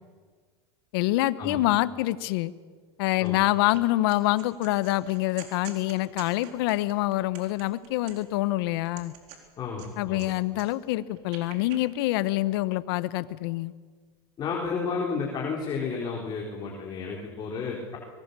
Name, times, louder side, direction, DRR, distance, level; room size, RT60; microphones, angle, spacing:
voice 1, 0.9-2.5 3.0-9.1 10.0-13.7, left 17 dB, 70° left, 17 dB, 0.9 m, -26 dB
sound 1, 3.2-3.8 4.1-8.4 8.8-10.3 10.5-11.8, right 9 dB, 60° right, 4.1 m, -47 dB
voice 2, 9.6-10.3 14.4-18.0, left 5 dB, 35° left, -2 dB, 4.1 m, -32 dB
23.5 x 20.0 x 6.8 m, 1.5 s
supercardioid pair, 115°, 13 cm